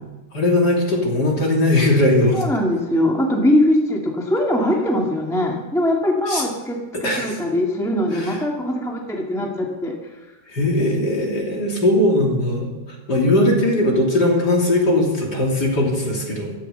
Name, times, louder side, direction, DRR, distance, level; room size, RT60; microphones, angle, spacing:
voice 1, 0.3-2.4 6.3-6.4 6.9-7.4 8.1-8.4 10.5-12.7 13.1-16.5, left 1 dB, 35° left, -1 dB, 3.3 m, -19 dB
voice 2, 2.3-10.0, left 1 dB, ahead, -1 dB, 1.4 m, -21 dB
16.0 x 13.0 x 6.8 m, 1.2 s
omnidirectional pair, 3.5 m